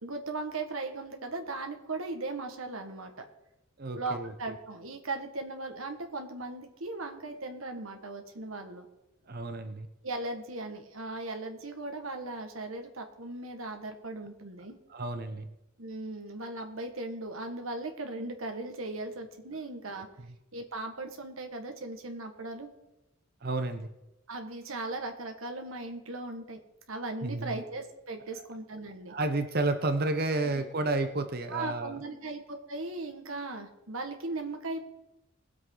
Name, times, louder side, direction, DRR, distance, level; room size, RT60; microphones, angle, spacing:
voice 1, 0.0-3.3 4.0-8.9 10.0-14.8 15.8-20.1 20.5-22.7 24.3-26.6 26.9-29.1 31.5-34.8, right 2 dB, 80° right, 5 dB, 1.8 m, -38 dB
voice 2, 3.8-4.3 9.3-9.9 14.9-15.5 23.4-23.9 27.2-27.6 29.1-32.0, right 2 dB, 50° right, 9 dB, 0.8 m, -31 dB
20.5 x 7.8 x 4.0 m, 0.93 s
head